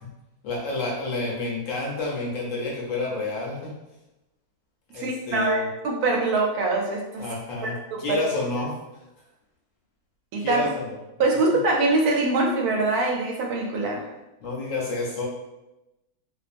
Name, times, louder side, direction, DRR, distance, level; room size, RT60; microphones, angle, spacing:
voice 1, 0.4-3.7 4.9-5.7 7.2-8.7 10.4-11.0 14.4-15.3, left 2 dB, 65° left, -3 dB, 0.9 m, -29 dB
voice 2, 5.0-7.3 7.6-8.2 10.3-10.6 11.2-14.1, right 3 dB, 80° right, 0 dB, 1.1 m, -24 dB
2.6 x 2.3 x 2.4 m, 0.96 s
omnidirectional pair, 1.6 m